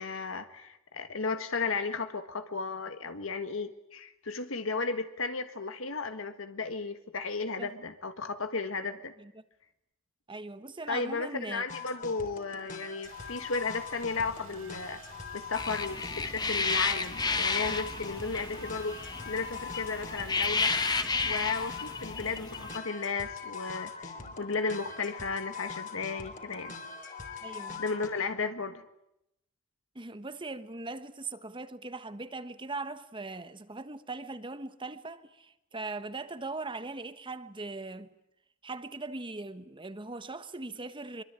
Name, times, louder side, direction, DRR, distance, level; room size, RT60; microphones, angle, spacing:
voice 1, 0.0-9.1 10.9-15.0 15.3-20.7 21.2-26.7 27.8-28.8, left 4 dB, 75° left, 1.6 m, -34 dB
voice 2, 10.3-11.7 27.4-27.8 29.9-38.1 38.6-41.2, right 3 dB, 25° right, 1.2 m, -40 dB
sound 1, 11.7-28.1, left 5 dB, 40° left, 3.4 m, -43 dB
Car / Engine, 13.0-21.3, right 4 dB, 75° right, 3.7 m, -53 dB
sound 2, 15.5-22.8, left 4 dB, 20° left, 1.4 m, -32 dB
24.5 x 23.5 x 8.9 m
head